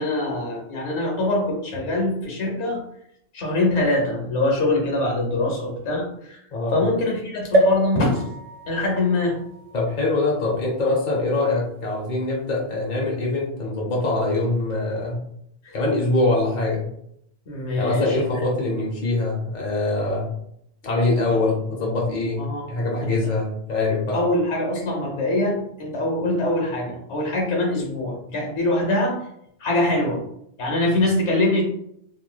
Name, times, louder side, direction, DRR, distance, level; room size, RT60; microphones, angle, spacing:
voice 1, 0.0-2.8 3.3-6.4 6.7-8.3 8.7-9.4 15.6-15.7 17.5-18.4 21.3-21.4 22.4-22.7 23.0-23.3 24.1-29.2 29.6-30.2 30.6-31.6, left 2 dB, 80° left, -1 dB, 1.2 m, -23 dB
sound 1, 7.5-11.2 11.8-11.9 12.1-12.2, right 1 dB, 50° right, 0.4 m, -26 dB
voice 2, 9.7-15.2 15.7-16.8 17.7-20.3 20.8-24.2, left 2 dB, 45° left, -3 dB, 0.9 m, -23 dB
3.2 x 2.6 x 2.2 m, 0.73 s
omnidirectional pair, 1.2 m